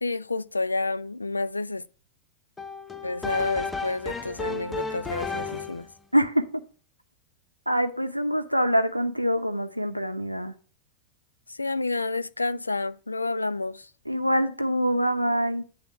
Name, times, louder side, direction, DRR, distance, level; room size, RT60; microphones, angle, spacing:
voice 1, 0.0-1.8 3.0-5.9 11.5-13.9, left 3 dB, 80° left, 0.3 m, -29 dB
sound 1, 2.6-5.9, left 4 dB, 15° left, 0.8 m, -33 dB
voice 2, 6.1-6.6 7.7-10.5 14.1-15.6, equal, 90° right, 0.7 m, -25 dB
9.5 x 3.5 x 6.8 m
figure-of-eight pair, 90°, 0 cm